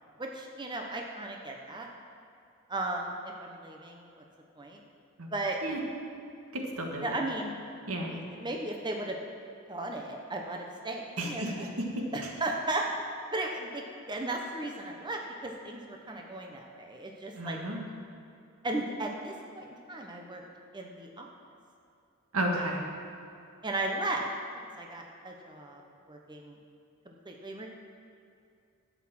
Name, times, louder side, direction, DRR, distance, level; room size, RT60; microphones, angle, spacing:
voice 1, 0.2-1.9 2.7-4.2 4.6-4.8 5.3-5.6 7.0-7.6 8.1-9.2 9.7-11.7 12.1-12.9 13.3-17.6 18.6-20.4 20.7-21.3 22.6-22.7 23.6-24.3 24.8-25.8 26.1-26.6 27.0-27.7, right 2 dB, 20° right, 1 dB, 0.9 m, -36 dB
voice 2, 6.5-7.0 7.9-8.1 11.2-12.0 17.4-17.8 22.3-22.8, right 1 dB, 85° right, 1 dB, 1.6 m, -32 dB
11.5 x 8.3 x 5.9 m, 2.5 s
head